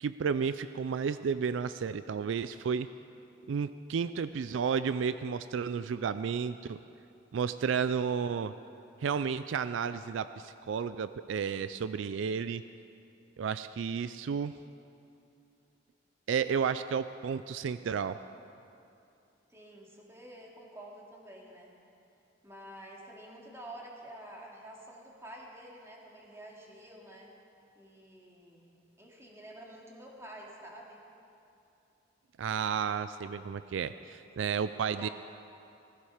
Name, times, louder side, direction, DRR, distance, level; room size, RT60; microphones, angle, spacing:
voice 1, 0.0-2.9 3.5-6.8 7.3-8.5 9.0-12.6 13.4-14.5 16.3-18.2 32.4-35.1, right 6 dB, 75° right, 13 dB, 0.4 m, -32 dB
voice 2, 19.5-21.7 22.4-27.3 27.7-31.0 34.2-35.1, right 1 dB, 15° right, -2 dB, 2.3 m, -49 dB
16.0 x 15.5 x 5.0 m, 2.7 s
head